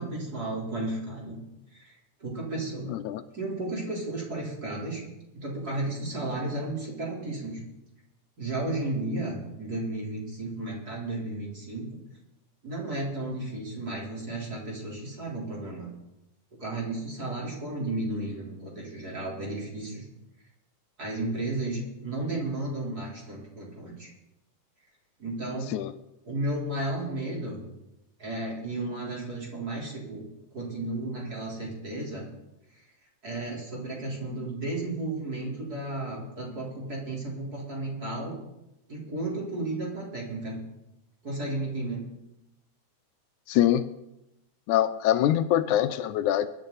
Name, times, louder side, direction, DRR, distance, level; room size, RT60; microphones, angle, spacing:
voice 1, 0.0-1.4 1.7-1.9 2.2-2.9 3.3-5.0 5.3-7.6 8.4-11.9 12.6-15.9 16.6-20.1 21.0-24.1 25.2-25.7 26.3-27.7 28.2-30.2 30.5-32.3 33.2-38.4 38.9-40.6 41.2-42.0, right 2 dB, 30° right, -4 dB, 4.2 m, -33 dB
voice 2, 2.9-3.2 25.7-25.9 43.5-43.9 44.7-46.5, left 12 dB, 80° left, 12 dB, 2.0 m, -24 dB
23.5 x 10.5 x 4.1 m, 0.90 s
omnidirectional pair, 3.5 m